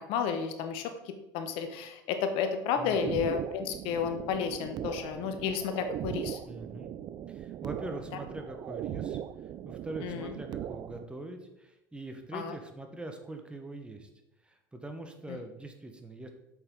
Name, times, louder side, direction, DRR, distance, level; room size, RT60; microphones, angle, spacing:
voice 1, 0.0-6.4 10.0-10.3 12.3-12.5 15.3-15.4, left 7 dB, 55° left, 8 dB, 0.9 m, -32 dB
voice 2, 2.8-3.2 6.4-6.9 7.3-9.2 9.6-14.1 14.4-16.3, right 2 dB, 10° right, 5 dB, 1.3 m, -42 dB
sound 1, 2.9-11.1, right 11 dB, 40° right, 0.4 m, -39 dB
8.0 x 6.4 x 3.9 m, 0.89 s
hypercardioid pair, 75°, 11 cm